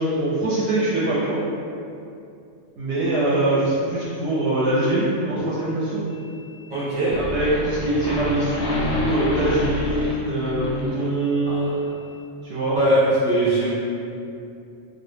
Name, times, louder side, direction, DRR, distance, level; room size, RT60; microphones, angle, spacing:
voice 1, 0.0-1.4 2.8-6.0 7.2-11.7 12.4-12.8, right 1 dB, 70° right, -9 dB, 0.8 m, -23 dB
sound 1, 6.1-6.8 7.0-11.5, left 1 dB, 90° left, 1.0 m, -29 dB
voice 2, 6.7-7.1 11.4-11.6 12.7-13.7, right 1 dB, 30° right, -11 dB, 0.9 m, -20 dB
2.3 x 2.0 x 3.1 m, 2.6 s
omnidirectional pair, 1.3 m